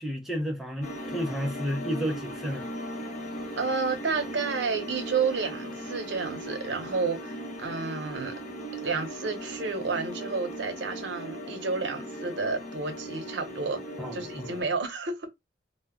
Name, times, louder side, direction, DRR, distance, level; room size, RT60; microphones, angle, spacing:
voice 1, 0.0-2.6 14.0-14.5, equal, ahead, 0.4 m, -32 dB
sound 1, 0.8-14.6, equal, 40° left, 0.7 m, -38 dB
voice 2, 3.6-8.3 8.8-13.8 14.1-15.3, right 4 dB, 70° right, 0.7 m, -31 dB
2.1 x 2.1 x 3.4 m
head